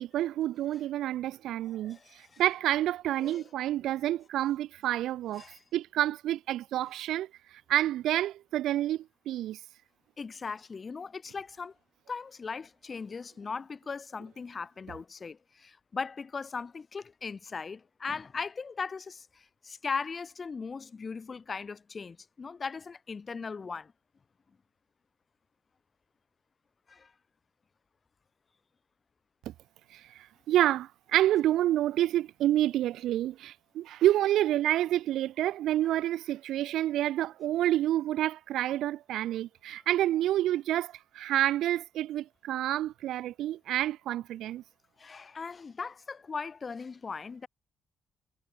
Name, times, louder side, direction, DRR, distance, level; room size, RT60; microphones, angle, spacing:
voice 1, 0.0-5.4 5.7-7.3 7.7-9.6 29.5-29.6 29.9-44.6, right 13 dB, 85° right, 0.4 m, -28 dB
voice 2, 1.7-2.4 3.2-3.4 5.4-5.6 10.2-11.7 12.1-23.9 26.9-27.1 45.0-47.5, left 5 dB, 30° left, 1.3 m, -39 dB
cardioid pair, 120°, 0 cm